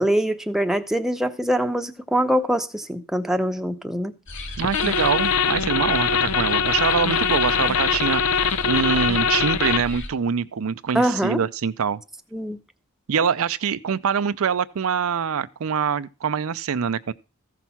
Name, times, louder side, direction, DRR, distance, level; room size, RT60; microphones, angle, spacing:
voice 1, 0.0-4.1 10.9-11.4 12.3-12.6, equal, ahead, 0.7 m, -23 dB
sound 1, 4.3-10.1, left 2 dB, 55° left, 2.4 m, -35 dB
sound 2, 4.6-10.0, left 6 dB, 75° left, 0.7 m, -22 dB
voice 2, 4.6-12.0 13.1-17.1, right 6 dB, 65° right, 0.5 m, -24 dB
14.5 x 6.1 x 5.7 m
head